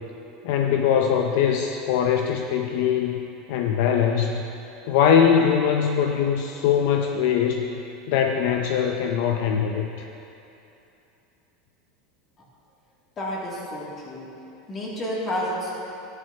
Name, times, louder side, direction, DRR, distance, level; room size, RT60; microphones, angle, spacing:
voice 1, 0.4-3.2 3.5-4.4 4.9-7.7 8.1-10.1, left 8 dB, 65° left, 3 dB, 0.6 m, -22 dB
voice 2, 13.2-14.3 14.7-15.7, equal, 25° left, -6 dB, 2.6 m, -30 dB
13.5 x 10.5 x 2.9 m, 2.9 s
supercardioid pair, 150°, 0 cm